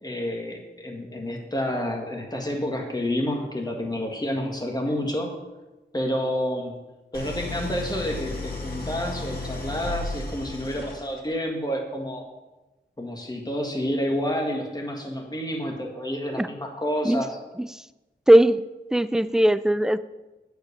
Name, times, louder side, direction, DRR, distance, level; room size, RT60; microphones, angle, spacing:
voice 1, 0.0-5.3 5.9-6.8 7.1-12.2 13.0-17.4, equal, 20° left, 1 dB, 1.8 m, -29 dB
Idling, 7.1-11.4, left 2 dB, 50° left, 2.3 m, -34 dB
voice 2, 18.3-18.6 18.9-20.0, right 1 dB, 5° right, 15 dB, 0.3 m, -18 dB
9.3 x 5.0 x 6.8 m, 1.1 s
wide cardioid pair, 95°, 20 cm